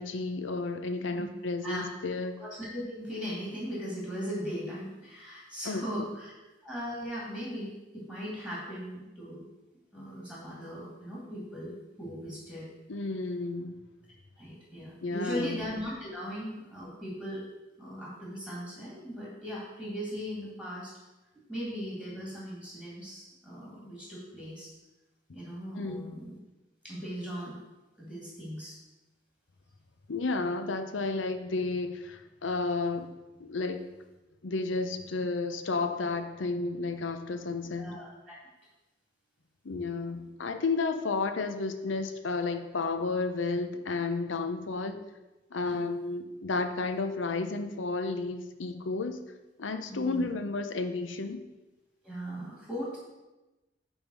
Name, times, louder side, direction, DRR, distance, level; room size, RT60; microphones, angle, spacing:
voice 1, 0.0-2.3 5.7-5.8 12.9-13.8 15.0-15.6 25.7-26.1 30.1-33.1 33.4-33.9 34.4-37.9 39.6-45.0 45.5-49.2 49.6-51.4, left 3 dB, 90° left, 8 dB, 0.7 m, -32 dB
voice 2, 2.4-6.3 6.6-9.5 9.9-12.7 14.4-17.4 17.8-20.9 21.5-24.7 25.3-26.4 26.8-27.6 28.0-28.8 37.8-38.4 45.6-45.8 49.9-50.2 52.0-53.0, equal, 5° left, -6 dB, 2.2 m, -38 dB
8.7 x 3.6 x 6.2 m, 1.1 s
head